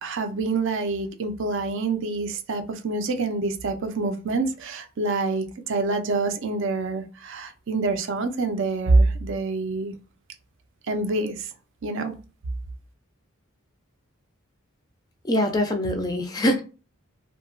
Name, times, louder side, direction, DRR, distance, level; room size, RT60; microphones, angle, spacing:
voice 1, 0.0-10.0 10.9-11.5 11.8-12.1, right 3 dB, 55° right, 0.4 m, -26 dB
voice 2, 15.2-16.6, left 1 dB, 15° left, 0.3 m, -23 dB
2.7 x 2.2 x 2.4 m
head